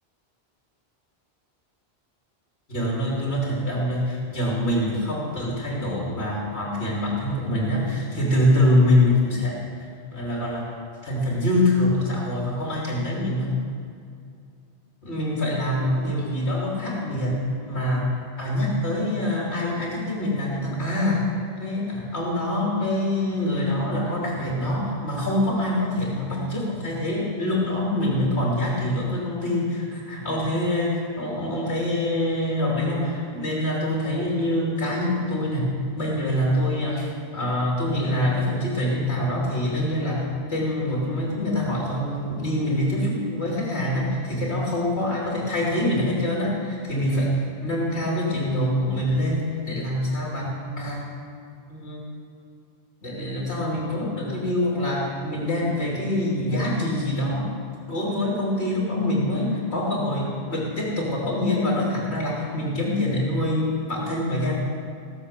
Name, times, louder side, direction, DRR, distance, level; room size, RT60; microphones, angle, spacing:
voice 1, 2.7-9.7 10.1-10.7 11.0-13.6 15.0-47.3 47.6-51.0 51.7-52.0 53.0-57.6 57.9-64.6, left 1 dB, 85° left, -4 dB, 3.3 m, -25 dB
17.5 x 7.4 x 6.6 m, 2.4 s
omnidirectional pair, 1.1 m